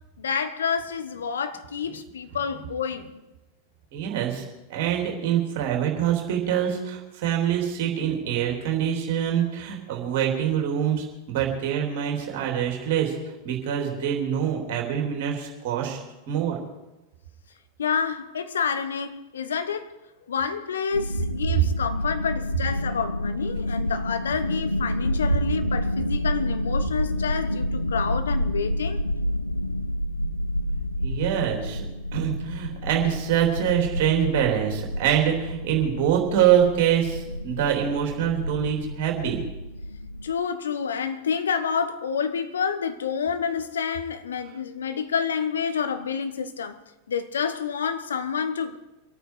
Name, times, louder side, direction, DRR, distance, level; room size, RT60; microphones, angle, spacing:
voice 1, 0.2-3.2 17.8-19.9 20.3-29.0 40.2-46.8 47.1-48.8, left 6 dB, 65° left, 1.1 m, -28 dB
voice 2, 3.9-4.4 4.7-13.1 13.4-16.0 16.3-16.6 31.0-31.9 32.1-39.4, right 9 dB, 50° right, 3.6 m, -25 dB
sound 1, 20.9-40.3, equal, 85° left, 0.5 m, -29 dB
25.5 x 9.1 x 4.9 m
figure-of-eight pair, 90°, 0 cm